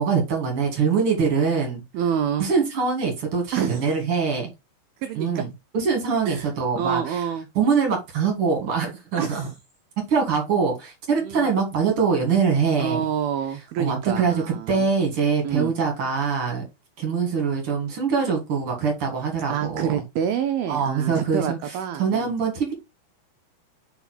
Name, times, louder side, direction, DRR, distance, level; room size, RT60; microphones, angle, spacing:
voice 1, 0.0-1.8 2.4-4.5 5.2-5.5 5.7-7.2 7.6-9.5 10.1-13.0 13.8-16.6 17.0-20.0 20.7-21.6 22.0-22.7, right 5 dB, 50° right, 1.8 m, -23 dB
voice 2, 1.9-2.5 3.5-4.0 5.0-5.5 6.3-6.5 6.8-7.5 9.2-9.5 11.2-11.5 12.8-14.9 15.4-15.7 19.5-22.3, right 8 dB, 85° right, 2.1 m, -27 dB
5.8 x 4.6 x 4.0 m
omnidirectional pair, 5.0 m